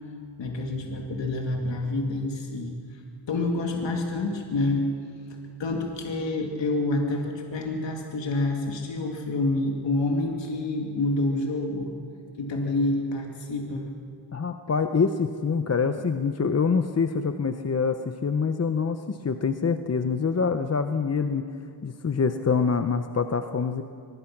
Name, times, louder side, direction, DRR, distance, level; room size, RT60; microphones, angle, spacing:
voice 1, 0.4-3.0 3.3-4.9 5.3-11.9 12.4-13.9, left 2 dB, 70° left, 1 dB, 2.5 m, -28 dB
voice 2, 14.3-21.5 21.8-23.8, left 5 dB, 35° left, 8 dB, 0.8 m, -25 dB
24.5 x 21.0 x 6.0 m, 2.2 s
wide cardioid pair, 105°, 46 cm